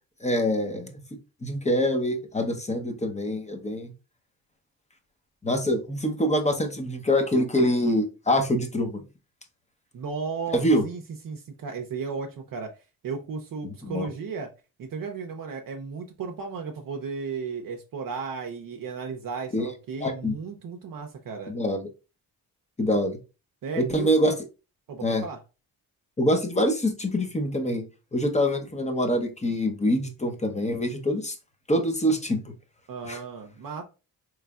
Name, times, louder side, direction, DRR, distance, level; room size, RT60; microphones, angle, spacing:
voice 1, 0.2-1.0 1.4-3.9 5.4-9.0 10.5-10.8 13.6-14.1 19.5-19.7 20.0-20.4 21.5-21.9 22.8-23.2 23.8-24.3 25.0-25.2 26.2-27.8 28.1-31.4 31.7-32.4 33.1-33.2, equal, 20° left, 5 dB, 0.8 m, -25 dB
voice 2, 9.9-12.7 13.0-14.5 14.8-21.5 23.6-24.1 24.9-25.4 32.9-33.8, right 5 dB, 60° right, 3 dB, 0.7 m, -35 dB
3.9 x 3.2 x 2.3 m, 0.30 s
cardioid pair, 85°, 37 cm